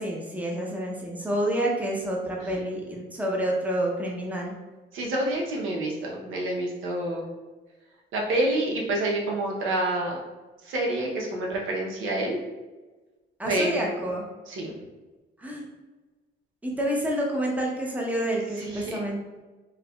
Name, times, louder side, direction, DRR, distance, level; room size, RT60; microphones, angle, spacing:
voice 1, 0.0-4.5 13.4-14.2 15.4-15.6 16.6-19.4, right 1 dB, 10° right, -2 dB, 0.7 m, -28 dB
voice 2, 4.9-7.3 8.1-10.2 10.6-12.4 13.5-13.8 14.5-14.8 18.6-19.0, right 1 dB, 80° right, -1 dB, 0.7 m, -28 dB
4.6 x 2.2 x 2.3 m, 1.2 s
cardioid pair, 90°, 20 cm